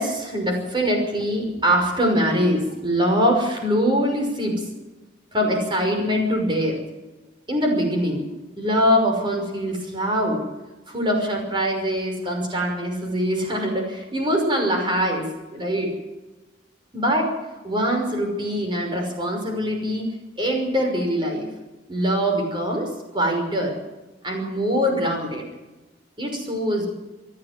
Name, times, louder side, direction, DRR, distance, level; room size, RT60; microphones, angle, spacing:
voice 1, 0.0-4.6 5.3-6.8 7.5-8.2 8.6-10.4 10.9-15.3 15.5-15.9 16.9-17.3 17.6-20.1 20.4-21.5 21.9-23.7 24.2-25.4 26.2-26.9, equal, 25° right, 2 dB, 5.9 m, -23 dB
28.0 x 11.0 x 9.4 m, 1.1 s
head